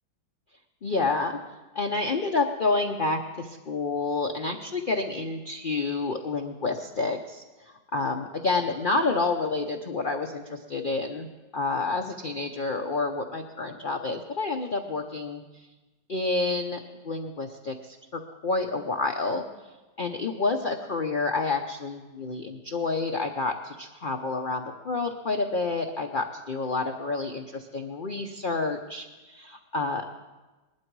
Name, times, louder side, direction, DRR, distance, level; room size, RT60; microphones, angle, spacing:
voice 1, 0.8-1.4 1.7-11.3 11.5-15.4 16.1-16.8 17.0-19.4 20.0-30.1, left 3 dB, 70° left, 3 dB, 0.5 m, -29 dB
19.5 x 12.0 x 4.7 m, 1.2 s
omnidirectional pair, 2.0 m